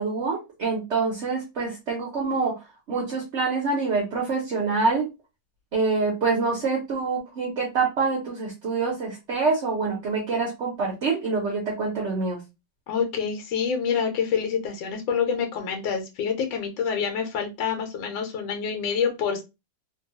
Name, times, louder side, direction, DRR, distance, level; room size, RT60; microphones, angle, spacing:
voice 1, 0.0-2.5 2.9-5.1 5.7-12.4, right 4 dB, 55° right, -2 dB, 0.8 m, -26 dB
voice 2, 12.9-19.4, left 6 dB, 90° left, 4 dB, 1.4 m, -27 dB
2.9 x 2.2 x 2.7 m, 0.25 s
omnidirectional pair, 2.0 m